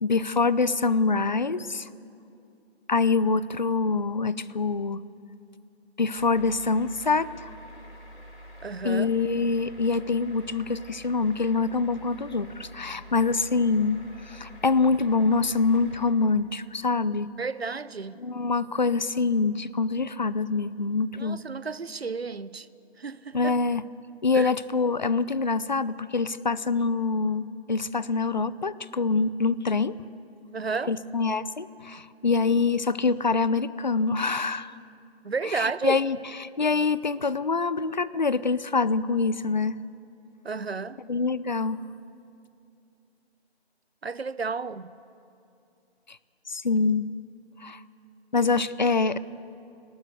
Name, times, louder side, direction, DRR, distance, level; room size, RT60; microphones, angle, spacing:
voice 1, 0.0-1.9 2.9-5.0 6.0-7.5 8.8-17.3 18.2-21.4 23.3-23.8 24.2-30.0 30.9-34.8 35.4-39.8 41.1-41.8 46.1-46.2 46.5-47.1 47.6-47.8 48.3-49.2, left 4 dB, 45° left, 0.6 m, -25 dB
sound 1, 6.2-16.1, equal, 65° left, 3.5 m, -47 dB
voice 2, 8.6-9.1 17.4-18.2 21.1-22.7 23.0-23.5 24.3-24.5 30.5-31.0 35.2-36.0 40.4-41.0 44.0-45.0, right 4 dB, 70° right, 0.8 m, -32 dB
30.0 x 12.5 x 8.0 m
figure-of-eight pair, 155°, 32 cm